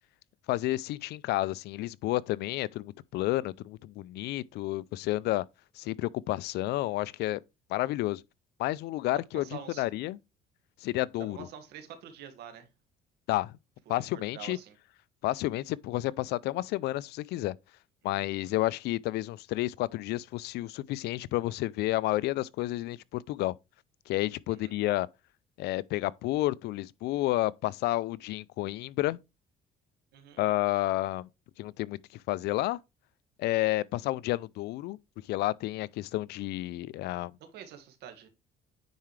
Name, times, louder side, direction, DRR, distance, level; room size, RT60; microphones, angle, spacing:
voice 1, 0.5-5.4 5.8-7.4 7.7-8.2 8.6-9.4 9.8-10.2 10.8-11.4 13.3-13.5 13.9-14.6 15.2-17.5 18.0-23.5 24.1-25.1 25.6-29.2 30.4-31.3 31.6-32.0 32.3-32.8 33.4-35.0 35.3-37.3, left 17 dB, 80° left, 0.4 m, -30 dB
voice 2, 9.3-9.8 11.2-12.7 13.8-14.7 18.4-18.7 24.5-24.7 30.1-30.4 37.4-38.3, right 9 dB, 80° right, 1.8 m, -47 dB
9.2 x 4.9 x 3.2 m
cardioid pair, 110°, 17 cm